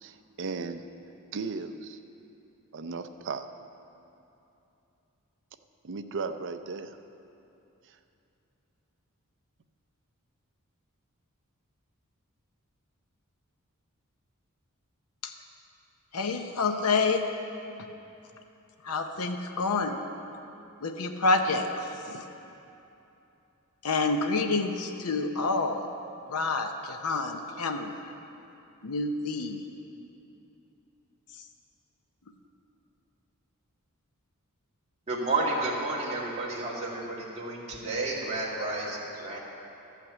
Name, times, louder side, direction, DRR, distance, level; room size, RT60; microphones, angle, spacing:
voice 1, 0.0-0.8 1.3-2.0 2.7-3.5 5.8-7.0, right 4 dB, 55° right, 9 dB, 0.5 m, -36 dB
voice 2, 16.1-17.3 18.8-20.0 20.8-22.2 23.8-25.8 26.3-27.9 28.8-29.6, left 3 dB, 80° left, 5 dB, 0.7 m, -28 dB
voice 3, 35.1-39.4, right 2 dB, 30° right, -5 dB, 2.1 m, -31 dB
13.0 x 5.9 x 8.2 m, 2.8 s
head